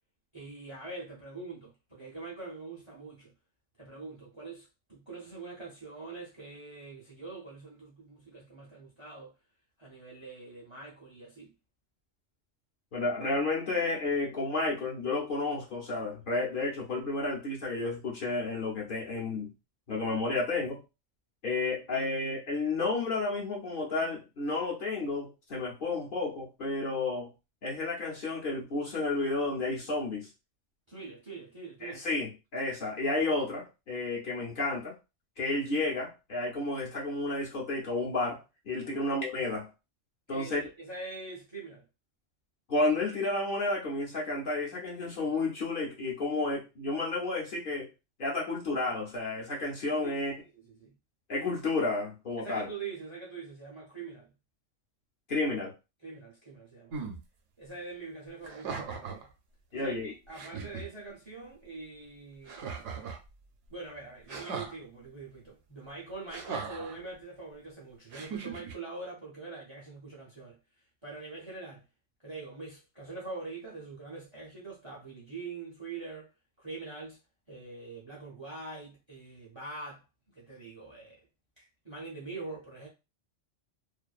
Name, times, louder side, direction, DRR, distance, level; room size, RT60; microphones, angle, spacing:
voice 1, 0.3-3.3 3.8-9.3 9.8-11.5 30.9-32.0 38.8-39.1 40.3-41.8 50.0-51.0 52.4-54.3 56.0-57.1 57.6-59.3 59.7-62.7 63.7-70.6 71.0-71.8 72.2-76.3 76.6-77.2 77.5-80.0 80.3-81.2 81.6-82.9, right 3 dB, 35° right, 0.5 m, -44 dB
voice 2, 12.9-19.5 19.9-20.8 21.4-27.3 27.6-30.3 31.8-35.0 35.4-39.7 40.3-40.6 42.7-47.9 48.2-50.3 51.3-52.7 55.3-55.7 59.7-60.1, left 2 dB, 50° left, 0.8 m, -31 dB
sound 1, 56.9-57.2 58.4-59.3 59.9-60.0 60.3-60.9 62.5-63.3 64.3-64.7 66.3-67.0 68.1-68.7, right 5 dB, 75° right, 0.9 m, -38 dB
2.5 x 2.2 x 2.3 m
omnidirectional pair, 1.3 m